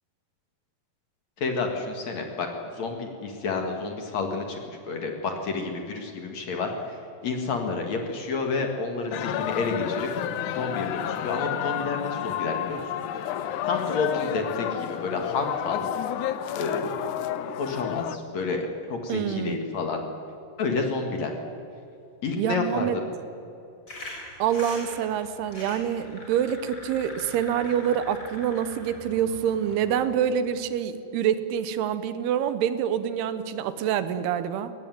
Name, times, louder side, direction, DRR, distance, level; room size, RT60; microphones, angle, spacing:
voice 1, 1.4-10.1 10.5-12.8 13.6-15.9 16.5-17.0 17.6-20.0 20.6-21.3 22.2-23.0, left 4 dB, 50° left, 3 dB, 2.7 m, -30 dB
sound 1, 9.1-18.2, left 10 dB, 80° left, 1.8 m, -30 dB
voice 2, 19.1-19.6 22.4-23.0 24.4-34.7, right 9 dB, 80° right, 12 dB, 2.9 m, -26 dB
sound 2, 23.9-30.0, left 1 dB, 20° left, 5.9 m, -43 dB
22.0 x 18.5 x 9.3 m, 2.8 s
omnidirectional pair, 4.7 m